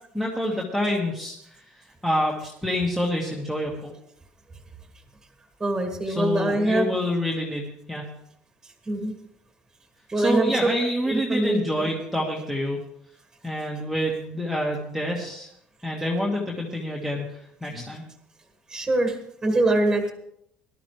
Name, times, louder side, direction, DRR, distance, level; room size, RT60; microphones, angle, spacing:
voice 1, 0.1-1.4 2.0-3.9 6.1-8.1 10.2-12.8 13.4-15.5 15.8-18.0, equal, 5° left, -3 dB, 1.7 m, -27 dB
voice 2, 5.6-7.0 8.9-9.1 10.1-10.5 11.1-11.9 18.7-19.2 19.4-20.1, right 2 dB, 15° right, 4 dB, 1.9 m, -23 dB
19.0 x 12.0 x 3.3 m, 0.75 s
cardioid pair, 140°, 4 cm